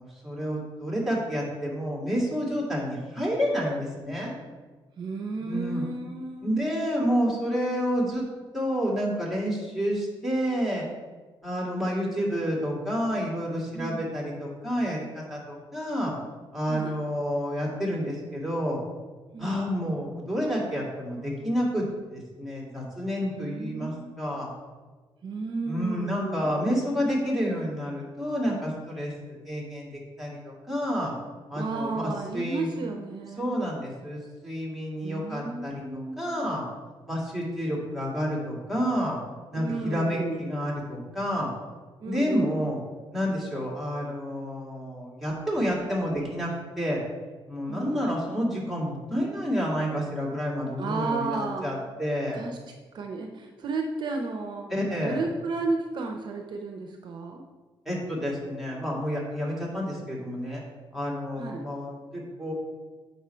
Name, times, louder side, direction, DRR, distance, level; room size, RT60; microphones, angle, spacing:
voice 1, 0.0-4.3 5.5-5.9 6.4-8.2 8.5-10.8 11.4-16.1 16.5-18.8 19.4-24.5 25.7-29.9 30.2-31.1 31.5-32.7 33.4-36.6 37.1-39.2 39.5-41.5 42.0-42.8 43.1-46.5 46.8-47.0 47.5-52.4 54.7-55.2 57.9-60.6 60.9-62.5, equal, ahead, -4 dB, 2.0 m, -29 dB
voice 2, 5.0-6.6 13.7-14.1 16.7-16.9 19.3-19.6 23.4-24.1 25.2-26.6 31.5-33.6 35.0-36.6 39.5-40.4 42.0-42.6 47.7-48.0 50.8-51.7 52.3-52.6 52.9-54.7 55.0-57.4 61.4-61.6, right 3 dB, 55° right, 3 dB, 0.7 m, -33 dB
7.2 x 5.5 x 4.4 m, 1.3 s
wide cardioid pair, 155°, 9 cm